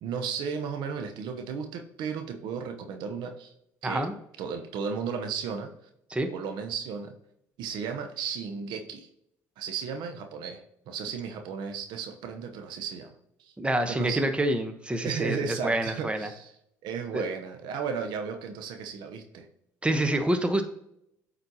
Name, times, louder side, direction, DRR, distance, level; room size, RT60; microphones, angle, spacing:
voice 1, 0.0-3.5 3.8-4.1 4.4-5.7 6.3-7.1 7.6-9.1 9.6-13.5 13.9-14.3 15.0-16.5 16.8-19.5, right 6 dB, 75° right, 5 dB, 0.8 m, -34 dB
voice 2, 3.8-4.1 6.1-6.3 13.6-16.3 17.1-17.3 19.8-20.6, right 1 dB, 15° right, 7 dB, 1.0 m, -27 dB
7.9 x 4.2 x 2.8 m, 0.76 s
supercardioid pair, 70°, 8 cm